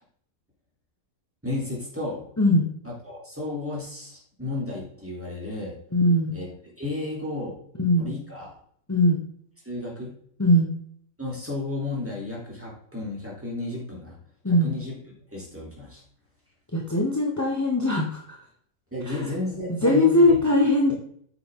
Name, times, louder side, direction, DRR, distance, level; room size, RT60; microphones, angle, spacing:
voice 1, 1.4-2.3 2.8-5.8 6.3-6.5 6.8-7.6 8.0-8.6 9.6-10.1 11.2-14.2 14.5-14.9 15.3-16.0 18.9-20.4, left 2 dB, 5° right, -4 dB, 3.3 m, -33 dB
voice 2, 5.9-6.3 7.8-8.1 8.9-9.2 10.4-10.7 14.4-14.7 16.7-18.4 19.1-19.2 19.8-20.9, left 1 dB, 15° left, -1 dB, 0.9 m, -20 dB
9.1 x 7.8 x 3.8 m, 0.63 s
omnidirectional pair, 1.9 m